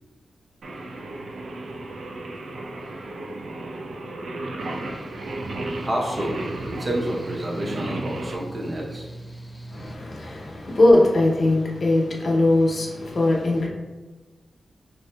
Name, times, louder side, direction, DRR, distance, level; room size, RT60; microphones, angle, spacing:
Singing, 0.6-8.4, right 2 dB, 80° right, 0.3 m, -34 dB
Mechanical fan, 4.6-10.0, right 1 dB, 10° left, 0.4 m, -41 dB
voice 1, 5.8-9.1 10.2-10.4, right 1 dB, 35° right, -2 dB, 0.7 m, -29 dB
voice 2, 9.7-13.7, left 2 dB, 60° left, -2 dB, 0.6 m, -20 dB
3.6 x 2.6 x 2.2 m, 1.2 s
cardioid pair, 70°, 0 cm